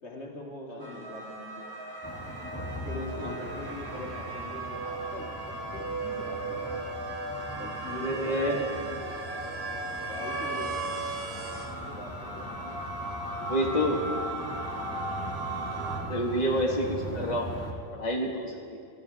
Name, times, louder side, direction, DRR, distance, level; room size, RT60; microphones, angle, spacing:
voice 1, 0.0-1.7 2.0-2.1 2.5-7.0 7.5-9.2 10.1-10.8 11.9-12.6 17.6-18.3, left 1 dB, 70° left, -2 dB, 2.6 m, -42 dB
sound 1, 0.8-16.0, right 2 dB, 55° right, 2.9 m, -36 dB
sound 2, 2.0-17.7, equal, 10° left, 2.0 m, -41 dB
voice 2, 8.0-8.6 12.6-12.8 13.5-14.0 16.1-17.5 17.9-18.8, equal, 35° left, -2 dB, 1.8 m, -29 dB
28.5 x 14.5 x 3.5 m, 2.3 s
omnidirectional pair, 1.2 m